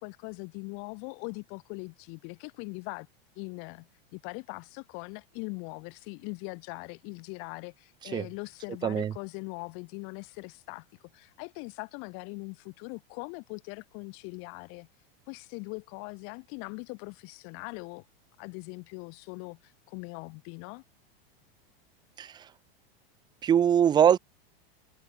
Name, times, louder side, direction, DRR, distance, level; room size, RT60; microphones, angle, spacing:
voice 1, 0.0-3.1 3.3-10.8 11.1-14.9 15.3-18.0 18.4-20.8, left 35 dB, 45° left, 3.4 m, -41 dB
voice 2, 8.8-9.1 22.2-22.5 23.4-24.2, right 9 dB, 15° right, 0.6 m, -23 dB
supercardioid pair, 150°, 29 cm